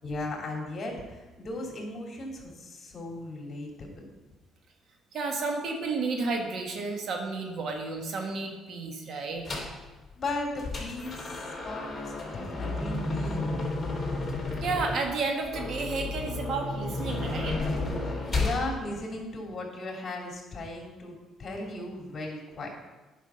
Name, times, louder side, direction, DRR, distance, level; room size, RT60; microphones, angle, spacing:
voice 1, 0.0-4.1 10.1-13.6 18.0-22.7, left 2 dB, 35° left, 0 dB, 2.9 m, -37 dB
voice 2, 5.1-9.4 14.6-17.6, right 3 dB, 60° right, 3 dB, 1.6 m, -32 dB
sound 1, 9.4-9.8 10.3-18.6, left 2 dB, 20° left, 3.5 m, -32 dB
9.7 x 5.8 x 5.7 m, 1.2 s
cardioid pair, 95°, 0 cm